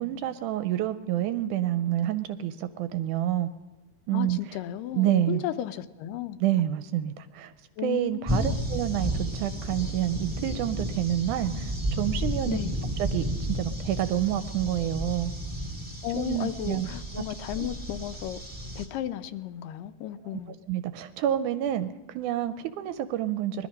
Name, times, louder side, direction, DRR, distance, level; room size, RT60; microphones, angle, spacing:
voice 1, 0.0-3.5 4.1-4.4 4.9-5.4 6.4-7.5 7.8-12.6 13.0-15.3 16.1-16.9 17.6-17.7 20.5-23.7, right 12 dB, 80° right, 1.9 m, -28 dB
voice 2, 4.1-6.4 7.8-8.6 12.5-12.8 16.0-18.4 18.8-20.5, left 12 dB, 85° left, 2.3 m, -34 dB
sound 1, 8.3-18.9, equal, 5° right, 1.5 m, -32 dB
20.0 x 12.0 x 5.3 m
omnidirectional pair, 3.9 m